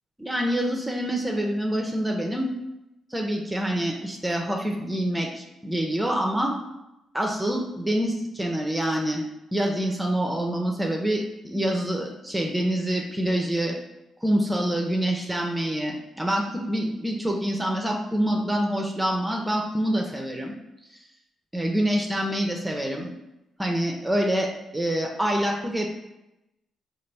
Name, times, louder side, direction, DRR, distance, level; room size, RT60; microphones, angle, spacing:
voice 1, 0.2-2.5 3.1-6.6 7.1-9.2 9.5-13.8 14.2-20.5 21.5-23.1 23.6-25.9, right 1 dB, 10° right, 1 dB, 0.6 m, -26 dB
4.0 x 2.4 x 3.3 m, 0.93 s
supercardioid pair, 55°, 0 cm